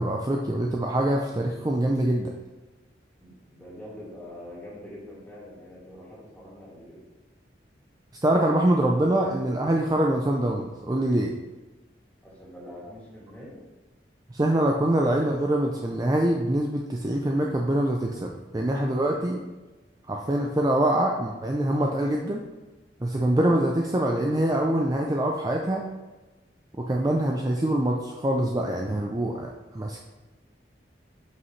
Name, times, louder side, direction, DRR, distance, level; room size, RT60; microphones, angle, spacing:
voice 1, 0.0-2.3 8.2-11.3 14.3-19.4 20.1-22.4 23.0-25.8 26.8-30.0, right 1 dB, 20° right, 0 dB, 0.4 m, -24 dB
voice 2, 3.2-7.0 12.2-13.6, left 1 dB, 10° left, -7 dB, 2.3 m, -44 dB
7.8 x 5.6 x 3.2 m, 1.2 s
head